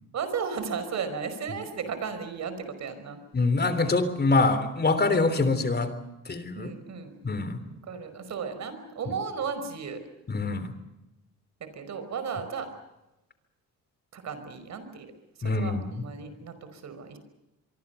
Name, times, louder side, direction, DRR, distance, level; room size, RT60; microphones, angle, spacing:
voice 1, 0.1-3.2 6.5-7.2 7.9-10.0 11.7-12.7 14.1-15.1 15.4-17.2, right 6 dB, 65° right, 10 dB, 5.1 m, -34 dB
voice 2, 3.3-5.9 6.3-6.7 7.2-7.6 10.3-10.7 15.4-16.0, left 3 dB, 35° left, 12 dB, 3.3 m, -25 dB
25.0 x 24.0 x 7.0 m, 0.97 s
cardioid pair, 90°, 30 cm